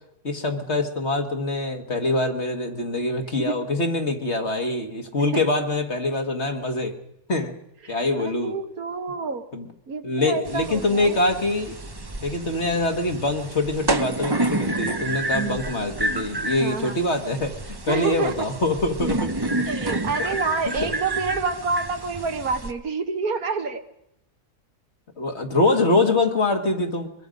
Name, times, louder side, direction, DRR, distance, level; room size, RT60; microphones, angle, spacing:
voice 1, 0.2-7.0 7.3-7.6 7.9-8.5 9.5-9.7 10.0-11.8 12.2-19.7 20.7-20.9 25.2-27.1, left 2 dB, 45° left, 5 dB, 2.1 m, -24 dB
voice 2, 7.8-9.5 9.9-11.2 15.3-15.6 16.6-17.0 17.9-18.5 19.7-23.8, right 4 dB, 65° right, 7 dB, 1.8 m, -28 dB
sound 1, 10.5-22.7, right 2 dB, 20° right, 0.7 m, -29 dB
23.5 x 22.0 x 5.3 m, 0.81 s
omnidirectional pair, 1.7 m